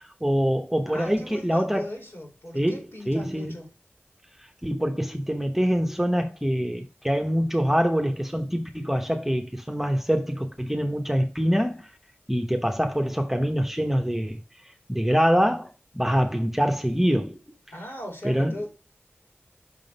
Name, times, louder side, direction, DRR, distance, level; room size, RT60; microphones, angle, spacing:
voice 1, 0.2-1.9 2.5-3.5 4.6-11.9 12.3-14.4 14.9-15.7 15.9-17.4 18.2-18.5, equal, 5° right, 1.0 m, -24 dB
voice 2, 0.9-3.7 17.7-18.7, left 1 dB, 65° left, 3.2 m, -38 dB
5.8 x 3.9 x 5.3 m
wide cardioid pair, 50°, 4 cm